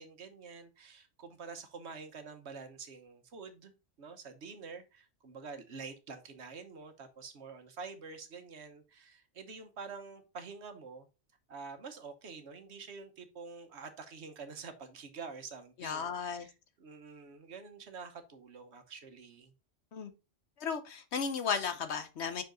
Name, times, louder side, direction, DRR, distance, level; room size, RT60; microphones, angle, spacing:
voice 1, 0.0-3.7 4.0-11.1 11.5-19.5, right 5 dB, 65° right, 1.2 m, -47 dB
voice 2, 15.8-16.5 19.9-20.1 20.6-22.4, left 6 dB, 65° left, 1.1 m, -35 dB
5.6 x 5.2 x 3.8 m
omnidirectional pair, 1.2 m